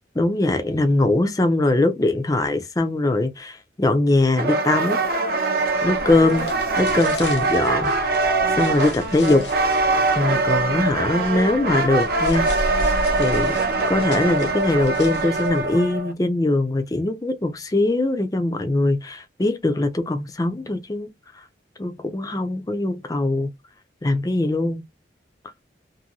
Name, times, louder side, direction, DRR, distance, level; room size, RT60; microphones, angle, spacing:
voice 1, 0.2-5.0 5.8-6.5 6.8-8.3 8.6-9.5 10.2-12.7 13.2-13.6 13.9-21.1 21.8-23.5 24.0-24.8, left 2 dB, 20° left, 0.5 m, -21 dB
sound 1, 4.4-16.1, right 3 dB, 50° right, 0.6 m, -23 dB
sound 2, 5.8-15.8, equal, 65° left, 0.8 m, -32 dB
2.7 x 2.6 x 2.8 m
head